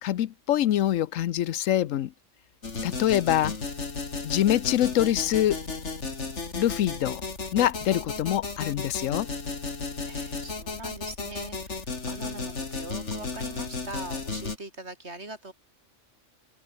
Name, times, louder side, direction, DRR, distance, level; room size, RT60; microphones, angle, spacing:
voice 1, 0.0-2.1 2.8-3.5 4.2-5.6 6.6-7.2 7.5-9.3, left 12 dB, 85° left, 1.1 m, -25 dB
sound 1, 2.6-14.6, left 4 dB, 65° left, 2.9 m, -34 dB
voice 2, 10.0-15.5, right 2 dB, 60° right, 5.5 m, -42 dB
omnidirectional pair, 1.3 m